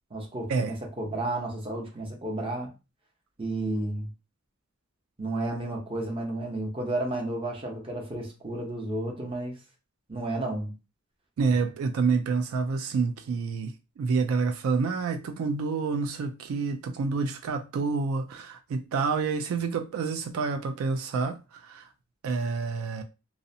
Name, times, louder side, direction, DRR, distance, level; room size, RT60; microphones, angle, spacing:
voice 1, 0.1-2.7 3.4-4.1 5.2-9.5 10.1-10.7, right 2 dB, 25° right, 0.7 m, -32 dB
voice 2, 11.4-21.9 22.2-23.0, right 4 dB, 80° right, 0.3 m, -28 dB
2.6 x 2.0 x 2.6 m
head